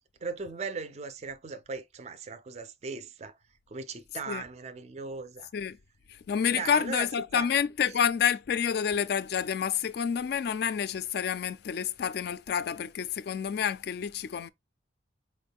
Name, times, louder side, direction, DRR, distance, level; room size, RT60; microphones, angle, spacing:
voice 1, 0.2-3.3 3.7-5.5 6.5-7.1 7.3-7.5, right 4 dB, 35° right, 0.3 m, -38 dB
voice 2, 6.1-14.5, left 7 dB, 55° left, 0.3 m, -29 dB
4.4 x 2.2 x 3.4 m
head